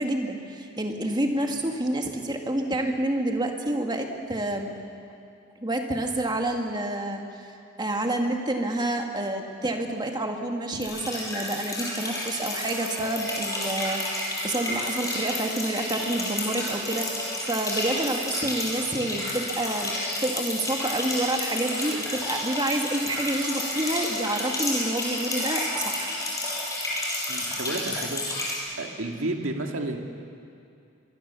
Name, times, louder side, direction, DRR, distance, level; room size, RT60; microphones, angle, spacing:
voice 1, 0.0-4.8 5.6-19.9 20.2-26.1, right 1 dB, 20° right, 3 dB, 2.0 m, -28 dB
sound 1, 10.8-28.5, left 1 dB, 15° left, 6.0 m, -31 dB
voice 2, 27.3-28.2 28.8-30.0, right 2 dB, 70° right, 3 dB, 2.0 m, -31 dB
24.0 x 23.0 x 7.0 m, 2.5 s
head